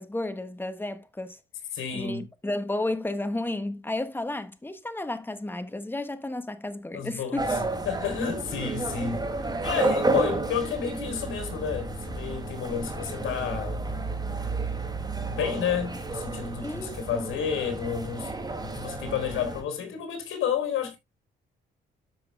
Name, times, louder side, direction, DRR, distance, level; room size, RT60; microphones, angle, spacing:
voice 1, 0.0-1.4 1.9-7.5 16.6-17.3, left 2 dB, 10° left, 1.3 m, -32 dB
voice 2, 1.7-2.2 6.9-7.6 7.9-9.2 9.6-13.8 15.3-18.3 18.6-21.0, left 7 dB, 80° left, 3.7 m, -31 dB
sound 1, 7.4-19.6, right 2 dB, 20° right, 3.9 m, -31 dB
13.5 x 5.9 x 2.2 m
cardioid pair, 90°, 20 cm